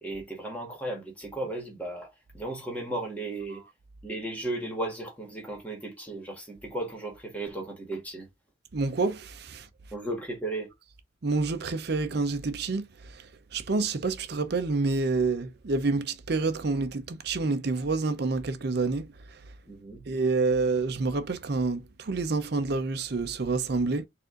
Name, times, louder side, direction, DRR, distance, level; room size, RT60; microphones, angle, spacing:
voice 1, 0.0-2.1 2.3-3.6 4.0-8.3 9.9-10.7 19.7-20.0, right 2 dB, 10° left, 1.4 m, -35 dB
voice 2, 8.7-9.7 11.2-19.4 20.1-24.1, right 3 dB, 55° right, 0.6 m, -28 dB
4.1 x 2.5 x 3.7 m
head